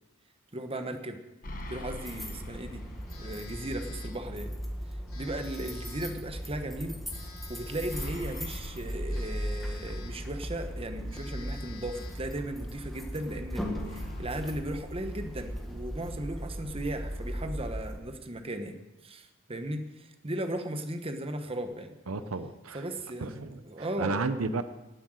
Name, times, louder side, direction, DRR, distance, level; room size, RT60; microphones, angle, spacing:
voice 1, 0.5-1.2 1.7-2.9 3.2-4.5 5.1-7.0 7.5-18.8 19.0-21.9 22.7-23.3 23.6-24.3, right 1 dB, 25° right, 7 dB, 1.1 m, -36 dB
sound 1, 1.4-3.5 3.8-3.9 7.9-9.9 13.7-15.7, left 1 dB, 40° left, 1.4 m, -43 dB
sound 2, 2.0-18.0, equal, ahead, 1.6 m, -38 dB
Telephone, 3.1-4.2 5.1-6.3 7.1-8.3 9.1-10.3 10.7-10.8 11.1-12.3, left 5 dB, 80° left, 3.2 m, -50 dB
voice 2, 22.1-22.8 23.2-23.6 24.0-24.6, right 3 dB, 80° right, 11 dB, 0.8 m, -32 dB
18.0 x 7.9 x 6.4 m, 1.0 s
head